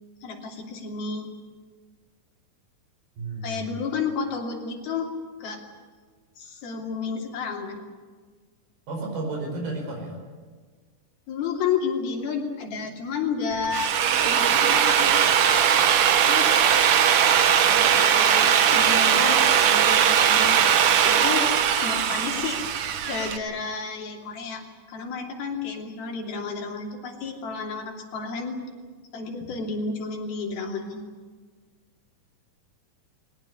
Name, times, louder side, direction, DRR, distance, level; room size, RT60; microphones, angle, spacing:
voice 1, 0.2-1.3 3.4-5.1 5.4-5.6 6.4-7.8 11.3-15.2 16.2-16.6 17.7-20.6 21.0-21.5 21.8-24.6 24.9-28.6 29.1-31.0, left 5 dB, 80° left, 1 dB, 4.8 m, -31 dB
voice 2, 3.2-3.7 8.9-10.2, right 2 dB, 85° right, 0 dB, 7.0 m, -32 dB
Drill, 13.5-23.4, right 8 dB, 70° right, 1.4 m, -20 dB
21.0 x 19.0 x 9.8 m, 1.5 s
omnidirectional pair, 4.2 m